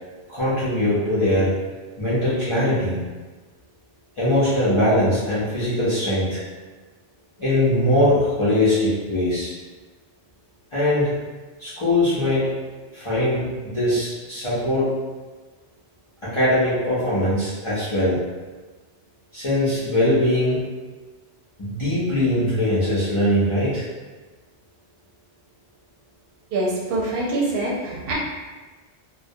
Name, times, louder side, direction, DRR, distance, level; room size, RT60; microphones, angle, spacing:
voice 1, 0.3-1.6 2.0-3.0 4.2-6.4 7.4-9.5 10.7-11.2 11.6-12.5 12.9-14.9 16.2-18.2 19.3-20.6 21.6-23.9, left 1 dB, 35° left, -12 dB, 0.5 m, -21 dB
voice 2, 26.5-28.1, right 2 dB, 60° right, -4 dB, 0.8 m, -24 dB
2.2 x 2.1 x 2.6 m, 1.3 s
omnidirectional pair, 1.2 m